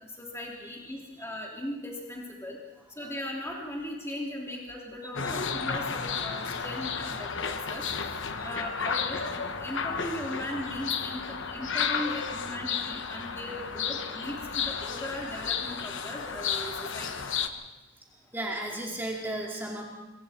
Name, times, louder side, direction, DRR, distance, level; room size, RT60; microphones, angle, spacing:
voice 1, 0.0-2.6 3.0-7.8 8.4-17.1, left 1 dB, 10° left, -2 dB, 3.1 m, -38 dB
sound 1, 5.1-17.5, left 6 dB, 60° left, 1.3 m, -32 dB
voice 2, 18.3-19.8, right 1 dB, 10° right, -1 dB, 2.5 m, -34 dB
25.5 x 23.0 x 4.4 m, 1.0 s
head